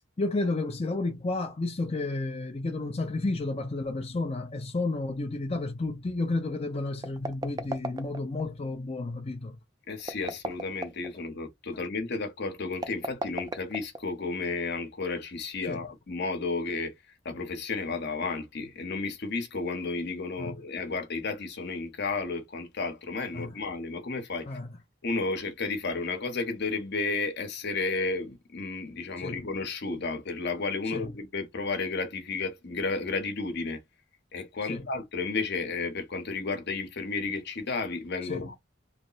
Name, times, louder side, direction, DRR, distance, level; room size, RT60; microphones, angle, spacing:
voice 1, 0.2-9.6 15.7-15.8 20.4-20.6 23.3-23.5 24.5-24.7 29.2-29.4 30.9-31.1 34.7-34.9 38.2-38.5, left 2 dB, 30° left, 0.5 m, -31 dB
sound 1, 7.0-8.4 10.0-11.1 12.7-14.3, right 2 dB, 20° right, 0.4 m, -35 dB
voice 2, 9.9-16.9 17.2-24.6 25.0-33.8 34.3-38.5, left 3 dB, 60° left, 0.9 m, -32 dB
3.2 x 2.0 x 3.9 m
head